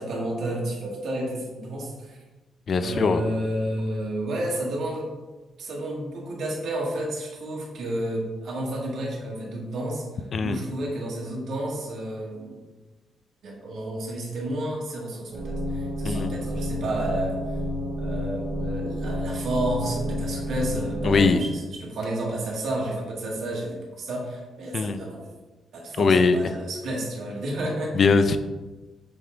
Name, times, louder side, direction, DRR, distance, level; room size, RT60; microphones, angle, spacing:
voice 1, 0.0-2.2 2.8-5.1 5.6-10.0 10.4-12.6 13.4-17.4 18.0-25.3 25.7-27.9, right 1 dB, 65° right, -3 dB, 1.8 m, -31 dB
voice 2, 2.7-3.2 10.3-10.6 16.0-16.3 21.0-21.4 24.7-25.0 26.0-26.4 27.9-28.4, left 4 dB, 45° left, 10 dB, 0.4 m, -21 dB
sound 1, 15.3-21.3, equal, 85° right, 1.5 m, -30 dB
7.6 x 3.5 x 3.7 m, 1.2 s
cardioid pair, 135°, 0 cm